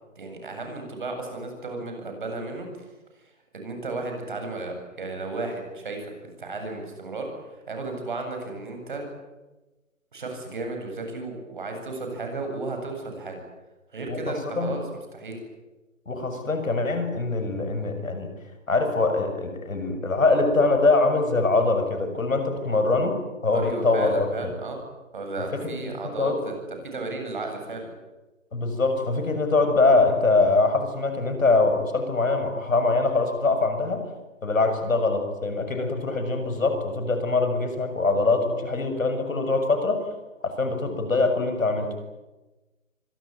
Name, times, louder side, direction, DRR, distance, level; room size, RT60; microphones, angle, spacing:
voice 1, 0.1-2.7 3.2-9.0 10.1-13.4 13.9-14.8 15.1-15.4 22.6-22.8 23.5-24.8 25.1-26.6 26.8-27.9, right 3 dB, 40° right, 4 dB, 7.9 m, -34 dB
voice 2, 14.1-14.7 16.0-18.3 18.7-23.2 23.4-24.5 25.5-26.4 28.5-34.0 34.4-40.0 40.4-42.0, left 3 dB, 80° left, 7 dB, 7.0 m, -23 dB
25.5 x 21.0 x 9.5 m, 1.1 s
hypercardioid pair, 175°, 40 cm